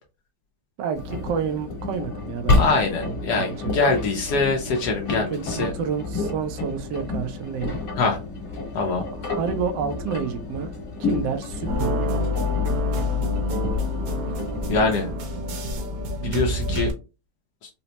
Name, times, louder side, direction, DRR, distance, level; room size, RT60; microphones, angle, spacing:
voice 1, 0.8-2.6 3.0-3.1 3.4-3.7 5.1-7.8 9.2-10.7 11.0-12.2 16.2-16.5, right 7 dB, 90° right, 7 dB, 1.2 m, -29 dB
Engine, 1.0-15.1, left 3 dB, 55° left, 1.6 m, -30 dB
voice 2, 2.6-5.7 8.0-8.2 8.7-9.0 14.7-15.1 16.2-16.9, left 4 dB, 75° left, 1 dB, 1.2 m, -23 dB
sound 1, 11.7-16.9, left 2 dB, 65° right, 1.1 m, -26 dB
4.1 x 2.1 x 2.7 m, 0.29 s
omnidirectional pair, 1.8 m